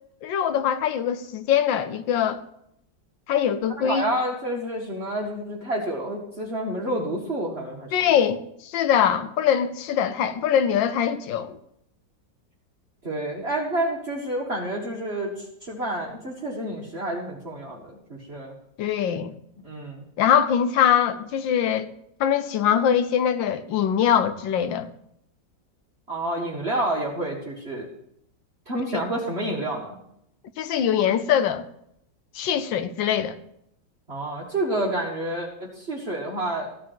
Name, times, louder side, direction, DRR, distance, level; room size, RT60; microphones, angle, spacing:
voice 1, 0.2-2.4 3.3-4.1 7.9-11.6 18.8-19.3 20.2-21.9 22.2-24.9 30.6-31.6 32.3-33.4, left 9 dB, 85° left, 1.5 m, -22 dB
voice 2, 3.8-7.9 13.0-18.5 19.6-20.1 26.1-27.9 28.7-30.0 34.1-36.7, right 1 dB, 35° right, 1.9 m, -29 dB
14.5 x 4.9 x 9.2 m
omnidirectional pair, 2.0 m